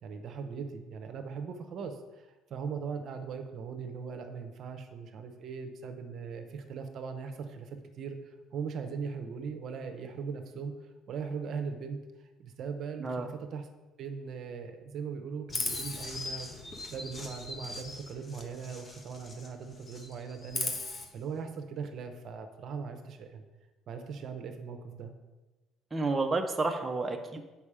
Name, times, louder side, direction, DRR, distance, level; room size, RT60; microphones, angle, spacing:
voice 1, 0.0-10.7 11.1-12.0 12.4-13.7 14.0-16.5 16.9-20.7 21.1-23.4 23.9-25.1, right 5 dB, 60° right, 6 dB, 0.8 m, -39 dB
Chirp tweet, 15.5-19.5 19.8-21.0, left 3 dB, 35° left, 1.3 m, -38 dB
voice 2, 25.9-27.4, right 3 dB, 20° right, 4 dB, 0.8 m, -30 dB
7.1 x 5.5 x 4.9 m, 1.2 s
supercardioid pair, 85°, 0 cm